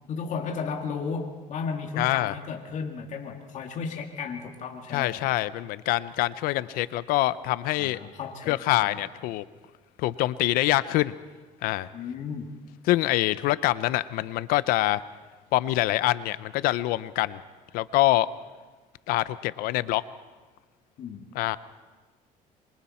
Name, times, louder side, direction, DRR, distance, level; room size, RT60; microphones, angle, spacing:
voice 1, 0.1-5.3 7.8-9.0 11.9-12.5 21.0-21.3, left 5 dB, 55° left, 2 dB, 2.1 m, -34 dB
voice 2, 2.0-2.3 4.9-8.0 8.5-9.4 10.0-11.2 11.6-11.9 12.9-15.0 15.5-17.4 17.7-18.3 19.1-20.0 21.3-21.6, left 16 dB, 85° left, 16 dB, 0.6 m, -25 dB
26.5 x 24.0 x 4.3 m, 1.3 s
cardioid pair, 120°, 15 cm